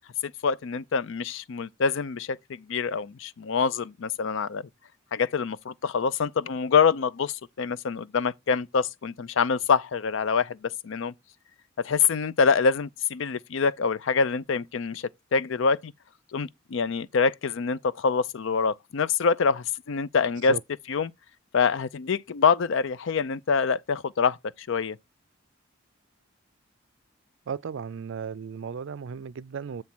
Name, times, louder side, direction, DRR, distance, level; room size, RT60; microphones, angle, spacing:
voice 1, 0.2-4.6 5.1-11.1 11.8-15.9 16.3-20.5 20.9-21.1 21.5-25.0, left 5 dB, 65° left, 0.5 m, -25 dB
voice 2, 27.5-29.8, right 6 dB, 65° right, 0.4 m, -35 dB
8.4 x 3.2 x 6.0 m
head